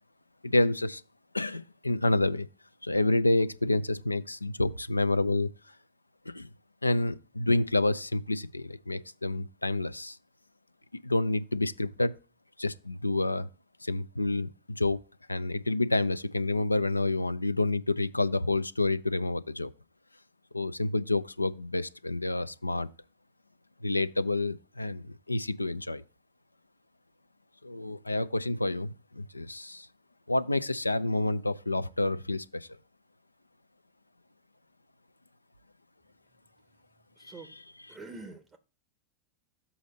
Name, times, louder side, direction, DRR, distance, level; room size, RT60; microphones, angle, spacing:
voice 1, 0.4-1.0 1.3-2.5 2.8-5.5 6.3-6.5 6.8-10.2 11.0-12.2 12.6-13.5 13.8-15.0 15.3-19.7 20.5-22.9 23.8-26.0 27.6-29.9 30.3-32.7 37.2-37.6 37.9-38.0, left 2 dB, 85° left, 0.4 m, -29 dB
voice 2, 37.2-37.6 37.9-38.6, right 3 dB, 20° right, 0.7 m, -45 dB
7.0 x 4.0 x 5.0 m
figure-of-eight pair, 90°, 0 cm